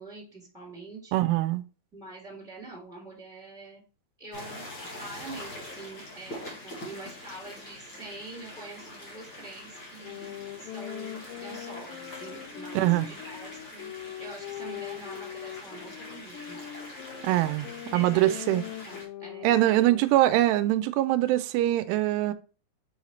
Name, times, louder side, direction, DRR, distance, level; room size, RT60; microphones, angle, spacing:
voice 1, 0.0-1.2 1.9-3.8 4.2-13.9 14.2-16.6 17.9-20.1, right 2 dB, ahead, 2.6 m, -45 dB
voice 2, 1.1-1.6 12.8-13.1 17.2-18.6 19.4-22.3, right 15 dB, 90° right, 2.7 m, -23 dB
sound 1, 4.3-19.0, left 1 dB, 45° left, 1.6 m, -44 dB
sound 2, 10.0-20.0, left 12 dB, 90° left, 2.0 m, -41 dB
7.1 x 4.8 x 3.1 m
omnidirectional pair, 4.7 m